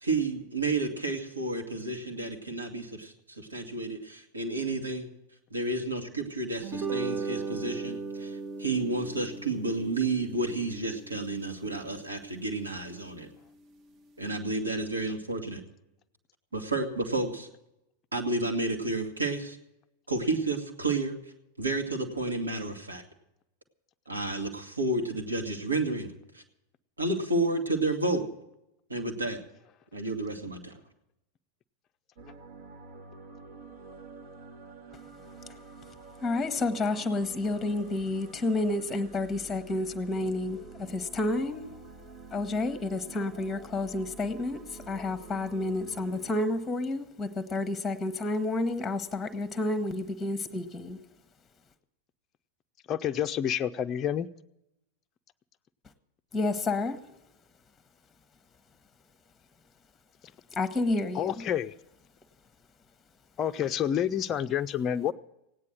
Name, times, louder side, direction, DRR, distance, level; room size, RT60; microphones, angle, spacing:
voice 1, 0.0-5.1 5.5-13.3 14.2-15.6 16.5-17.5 18.1-19.6 20.1-21.2 21.6-23.0 24.1-26.4 27.0-28.2 28.9-29.4 29.9-30.7, right 2 dB, 80° right, 3 dB, 1.9 m, -31 dB
sound 1, 6.6-13.1, right 4 dB, 35° right, 0.9 m, -38 dB
sound 2, 32.2-46.4, right 3 dB, 55° right, 1.3 m, -48 dB
voice 2, 36.2-41.6 42.3-51.0 56.3-57.0 60.5-61.3, left 2 dB, 15° left, 10 dB, 1.0 m, -30 dB
voice 3, 52.9-54.3 61.1-61.7 63.4-65.1, left 9 dB, 30° left, 9 dB, 0.5 m, -28 dB
17.0 x 9.7 x 7.6 m, 0.87 s
figure-of-eight pair, 90°, 0 cm